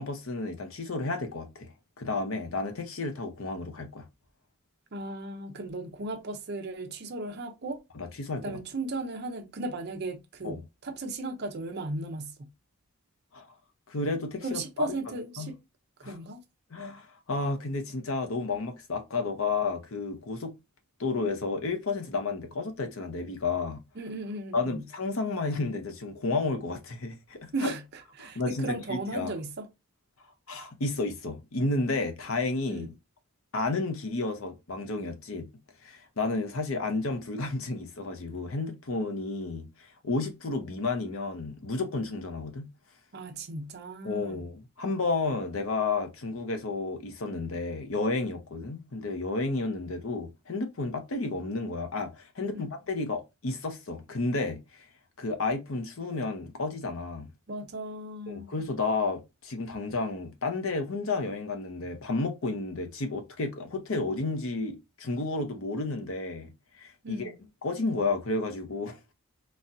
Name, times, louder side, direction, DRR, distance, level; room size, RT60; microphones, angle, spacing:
voice 1, 0.0-4.0 8.0-8.5 10.4-10.6 13.3-13.5 13.9-14.9 15.4-15.5 16.0-16.2 16.7-20.6 21.0-23.8 24.5-27.7 28.2-29.3 30.5-32.9 33.5-35.5 35.8-42.7 44.0-54.8 55.2-57.3 58.3-66.5 66.8-67.3 67.6-69.0, left 3 dB, 70° left, 0.7 m, -31 dB
voice 2, 4.9-7.8 8.4-12.5 14.4-15.6 16.0-16.4 24.0-24.8 27.5-27.8 28.2-29.7 32.7-32.9 43.1-44.5 52.5-52.7 57.5-58.5 67.0-67.3, right 2 dB, 50° right, 0.6 m, -36 dB
4.1 x 2.3 x 2.6 m
head